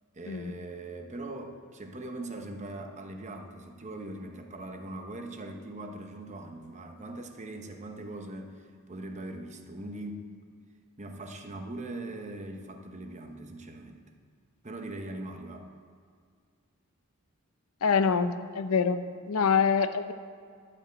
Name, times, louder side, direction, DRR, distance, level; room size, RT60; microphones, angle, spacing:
voice 1, 0.1-10.3 11.0-14.0 14.6-15.7, right 2 dB, 35° right, 4 dB, 0.9 m, -41 dB
voice 2, 17.8-19.0 19.3-20.1, left 6 dB, 85° left, 10 dB, 0.6 m, -25 dB
11.5 x 5.4 x 7.9 m, 2.1 s
head